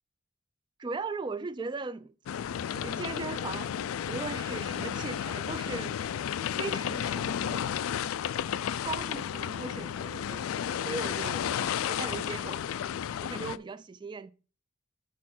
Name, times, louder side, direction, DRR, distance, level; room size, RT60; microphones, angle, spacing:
voice 1, 0.8-2.1 2.7-3.8 4.1-6.0 6.6-7.7 8.8-11.5 11.9-12.6 13.2-14.3, right 4 dB, 20° right, 0.3 m, -38 dB
sound 1, 2.3-13.6, left 9 dB, 85° left, 0.3 m, -33 dB
6.5 x 4.2 x 6.0 m
head